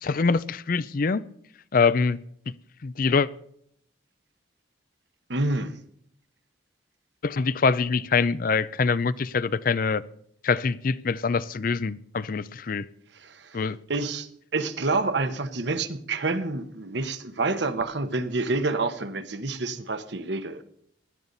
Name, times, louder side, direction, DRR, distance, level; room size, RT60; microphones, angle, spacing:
voice 1, 0.0-1.2 1.7-2.2 2.8-3.3 7.2-10.0 10.4-12.9 13.5-13.8, left 4 dB, 45° left, 0.4 m, -24 dB
voice 2, 5.3-5.8 13.1-13.6 13.9-20.6, right 3 dB, 60° right, 1.1 m, -28 dB
16.5 x 12.0 x 4.0 m
head